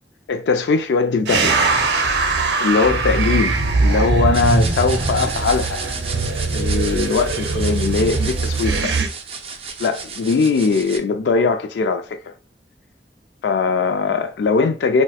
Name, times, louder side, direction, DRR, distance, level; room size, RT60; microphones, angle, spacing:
voice 1, 0.3-1.6 2.6-5.8 6.5-9.0 9.8-12.3 13.4-15.0, left 4 dB, 80° left, 0.3 m, -20 dB
sound 1, 1.3-9.1, right 3 dB, 90° right, 0.6 m, -21 dB
sound 2, 4.3-11.0, right 5 dB, 30° right, 0.4 m, -32 dB
4.1 x 2.2 x 2.2 m
head